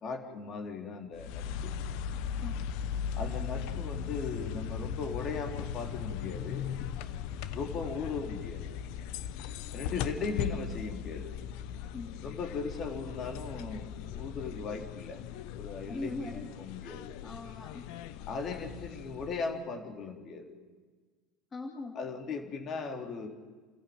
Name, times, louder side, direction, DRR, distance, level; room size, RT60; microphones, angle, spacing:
voice 1, 0.0-1.7 3.1-6.7 7.5-8.7 9.7-11.3 12.2-15.2 15.5-17.2 18.3-20.5 21.9-23.3, left 4 dB, 45° left, 4 dB, 4.0 m, -38 dB
sound 1, 1.1-19.6, left 8 dB, 70° left, 1.1 m, -38 dB
voice 2, 11.9-12.3 15.9-16.5 17.2-17.9 21.5-22.0, left 2 dB, 25° left, 2 dB, 2.4 m, -40 dB
29.5 x 14.0 x 9.0 m, 1.4 s
supercardioid pair, 105°, 0 cm